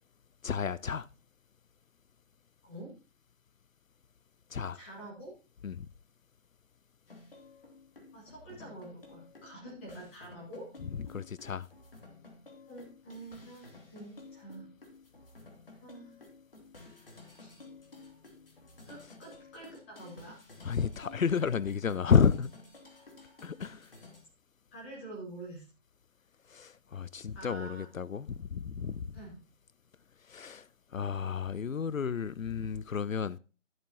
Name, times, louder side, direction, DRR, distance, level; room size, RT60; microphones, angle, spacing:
voice 1, 0.4-1.1 4.5-4.8 5.6-5.9 10.8-11.7 20.6-22.5 23.4-23.9 26.5-29.2 30.3-33.4, left 6 dB, 85° left, 0.6 m, -31 dB
voice 2, 4.7-5.3 8.1-10.7 12.7-14.6 15.8-16.2 17.4-17.5 18.9-20.3 24.7-25.7 27.3-27.9 29.1-29.4, right 2 dB, 10° left, 2.0 m, -46 dB
sound 1, 7.1-24.2, left 3 dB, 45° left, 2.5 m, -53 dB
13.0 x 7.6 x 2.9 m
figure-of-eight pair, 160°, 39 cm